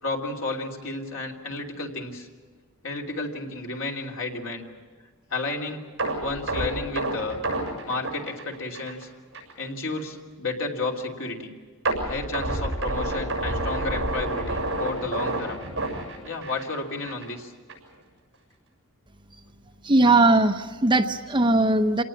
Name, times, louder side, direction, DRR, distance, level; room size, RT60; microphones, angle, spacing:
voice 1, 0.0-2.3 2.8-4.7 5.3-5.8 6.2-7.4 7.8-9.1 9.6-11.5 12.0-15.6 16.2-17.5, left 3 dB, 65° left, 0 dB, 3.0 m, -32 dB
sound 1, 6.0-9.0 9.3-9.5 10.0-10.1 11.9-16.8 17.1-17.3 17.7-17.8, right 2 dB, 55° right, 7.0 m, -29 dB
voice 2, 19.8-22.0, right 2 dB, 20° right, 6 dB, 0.9 m, -19 dB
27.5 x 19.0 x 7.2 m, 1.5 s
head